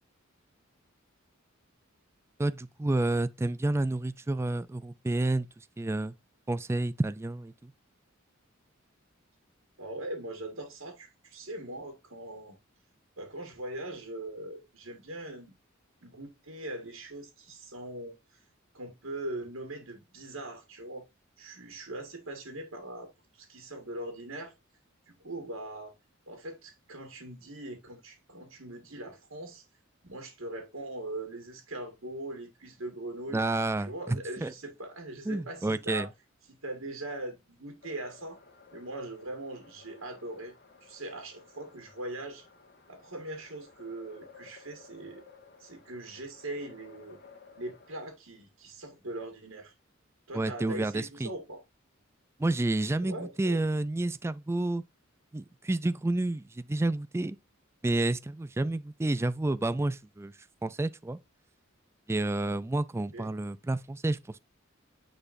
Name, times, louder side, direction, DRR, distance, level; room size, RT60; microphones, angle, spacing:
voice 1, 2.4-6.1 6.5-7.7 33.3-34.5 35.3-36.1 50.3-51.3 52.4-54.8 55.3-57.4 57.8-60.3 60.6-61.2 62.1-64.4, right 2 dB, 15° right, 0.3 m, -30 dB
voice 2, 9.8-12.6 13.2-15.5 16.0-18.4 18.7-21.1 21.4-24.5 25.1-25.9 26.3-29.7 30.0-33.4 33.8-36.1 36.5-38.4 38.7-40.5 40.8-42.5 42.9-45.2 45.6-47.2 47.6-49.7 50.3-51.6 53.0-53.6 63.1-63.3, right 1 dB, 75° right, 1.8 m, -41 dB
sound 1, 37.8-48.1, left 4 dB, 55° left, 1.8 m, -56 dB
9.7 x 4.1 x 2.6 m
head